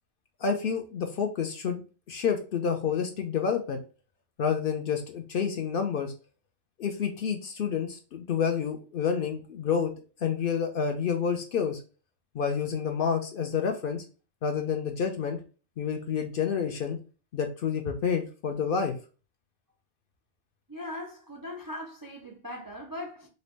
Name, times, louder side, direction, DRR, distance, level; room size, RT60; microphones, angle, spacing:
voice 1, 0.4-1.8 2.1-3.8 4.4-6.1 6.8-9.9 10.2-11.8 12.3-14.0 14.4-15.4 15.8-17.0 17.3-18.9, left 6 dB, 60° left, 0.6 m, -29 dB
voice 2, 20.7-23.3, left 1 dB, 35° right, 0.3 m, -39 dB
3.9 x 2.1 x 3.0 m
omnidirectional pair, 1.2 m